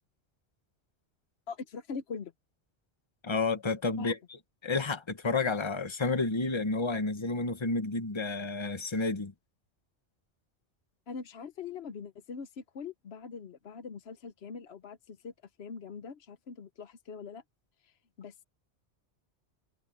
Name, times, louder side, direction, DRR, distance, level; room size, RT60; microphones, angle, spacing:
voice 1, 1.5-2.3 4.0-4.1 11.1-15.3 15.6-17.4 17.8-18.4, left 5 dB, 65° left, 1.1 m, -42 dB
voice 2, 3.2-4.2 4.6-9.3, left 3 dB, 25° left, 1.2 m, -30 dB
omnidirectional pair, 1.2 m